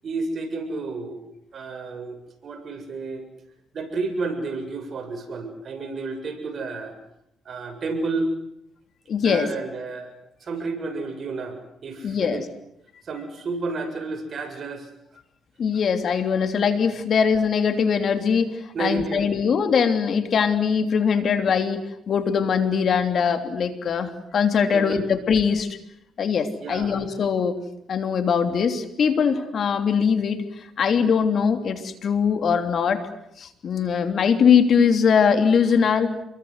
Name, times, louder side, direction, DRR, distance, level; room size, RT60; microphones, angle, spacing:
voice 1, 0.0-1.2 1.5-3.3 3.7-7.0 7.4-8.3 9.2-10.1 10.4-12.5 13.0-14.9 18.7-19.4 24.7-25.1 26.6-27.0, right 3 dB, 50° right, 6 dB, 7.4 m, -31 dB
voice 2, 9.1-9.5 12.0-12.4 15.6-25.7 26.2-27.6 27.9-30.4 30.8-33.0 33.4-36.2, left 6 dB, 55° left, 8 dB, 3.1 m, -21 dB
29.5 x 23.0 x 8.1 m, 0.79 s
cardioid pair, 90°, 0 cm